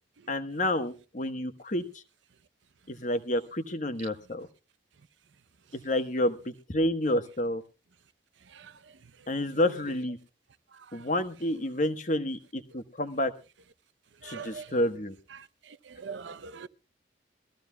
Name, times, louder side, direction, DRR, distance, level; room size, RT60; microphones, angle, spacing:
voice 1, 0.3-2.0 2.9-4.5 5.7-7.6 9.3-10.2 10.9-13.3 14.2-15.1, left 1 dB, 40° left, 1.2 m, -29 dB
voice 2, 14.2-14.7 15.3-15.4 15.9-16.7, right 5 dB, 75° right, 0.6 m, -41 dB
23.0 x 14.5 x 2.2 m
head